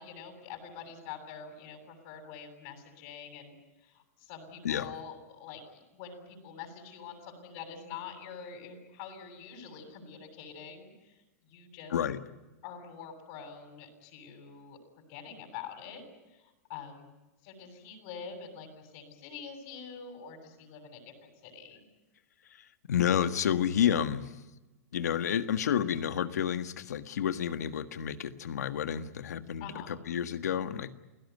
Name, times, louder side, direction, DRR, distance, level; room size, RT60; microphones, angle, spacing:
voice 1, 0.0-12.0 12.6-16.0 16.3-17.1 17.4-21.8 29.6-29.9, left 6 dB, 55° left, 3 dB, 7.1 m, -46 dB
voice 2, 22.9-24.3 24.9-30.9, left 9 dB, 80° left, 10 dB, 1.6 m, -30 dB
28.5 x 17.0 x 9.5 m, 1.1 s
hypercardioid pair, 120°, 9 cm